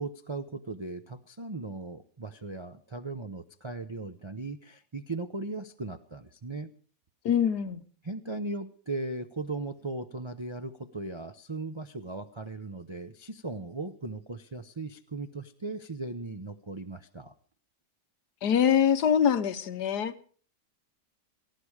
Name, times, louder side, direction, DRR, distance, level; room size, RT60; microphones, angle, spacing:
voice 1, 0.0-6.7 8.0-17.3, right 2 dB, 50° right, 0.3 m, -38 dB
voice 2, 7.2-7.8 18.4-20.1, left 8 dB, 75° left, 1.5 m, -24 dB
18.5 x 15.5 x 4.8 m
omnidirectional pair, 1.8 m